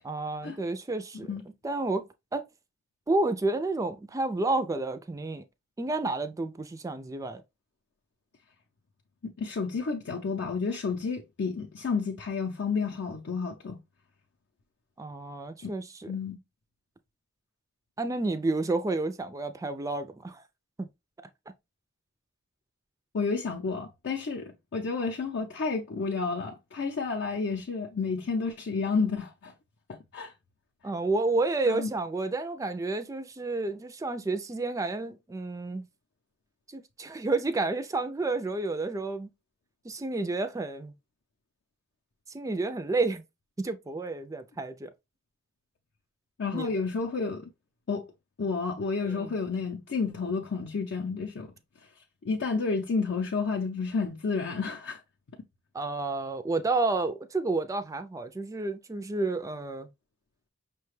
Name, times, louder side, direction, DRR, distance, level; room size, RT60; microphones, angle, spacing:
voice 1, 0.0-1.3 1.6-2.4 3.1-5.4 5.8-7.4 15.0-16.1 18.0-20.4 20.8-20.9 30.8-35.9 36.7-39.3 39.8-40.9 42.3-43.2 43.6-44.9 46.5-46.7 49.0-49.3 55.7-59.9, right 3 dB, 15° right, 0.3 m, -30 dB
voice 2, 9.2-13.8 15.6-15.7 16.1-16.4 23.1-29.5 29.9-30.3 31.7-31.9 46.4-47.5 47.9-48.1 48.4-51.5 52.2-55.0, left 4 dB, 60° left, 0.5 m, -31 dB
5.6 x 2.2 x 3.1 m
head